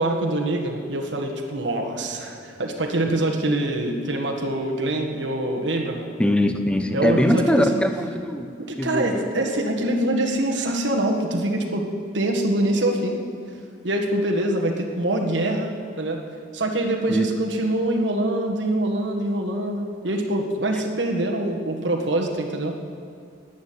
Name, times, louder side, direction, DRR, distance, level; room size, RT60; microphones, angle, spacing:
voice 1, 0.0-6.1 6.9-7.8 8.6-11.9 12.1-13.2 13.8-15.7 16.0-16.2 16.5-22.8, right 1 dB, 80° right, 1 dB, 1.6 m, -24 dB
voice 2, 6.2-8.5 8.8-9.3 17.1-17.3 20.7-20.8, equal, 5° left, 6 dB, 0.8 m, -22 dB
11.5 x 9.4 x 9.4 m, 2.3 s
head